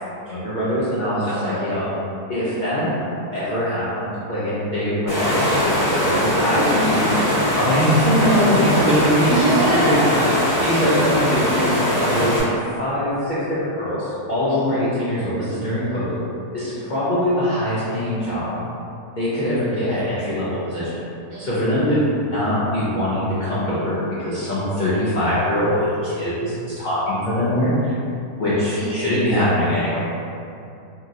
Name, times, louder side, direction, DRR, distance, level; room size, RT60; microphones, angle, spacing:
voice 1, 0.3-1.8 2.3-2.9 3.3-7.1 7.5-9.5 9.9-10.0 10.6-12.5 12.8-13.4 13.8-16.2 16.5-18.6 19.2-20.9 21.4-27.9 28.4-30.0, equal, 75° left, -11 dB, 0.4 m, -22 dB
voice 2, 1.3-1.7 9.3-10.5 14.5-14.8 16.6-16.9 21.3-21.6 28.8-29.0, right 2 dB, 70° right, -7 dB, 1.0 m, -25 dB
Water, 5.1-12.4, equal, 20° left, 1.1 m, -21 dB
2.9 x 2.7 x 2.4 m, 2.6 s
omnidirectional pair, 1.7 m